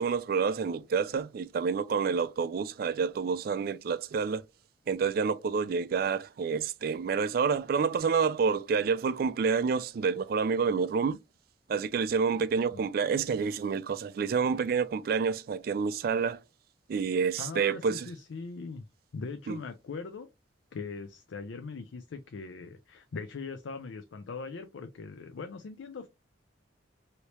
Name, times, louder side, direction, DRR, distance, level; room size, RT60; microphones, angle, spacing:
voice 1, 0.0-4.4 4.9-11.2 11.7-16.4 16.9-18.1 19.5-19.6, right 5 dB, 50° right, 0.3 m, -28 dB
voice 2, 17.4-18.8 19.1-20.3 20.7-26.1, left 4 dB, 90° left, 0.4 m, -40 dB
2.9 x 2.8 x 3.1 m
head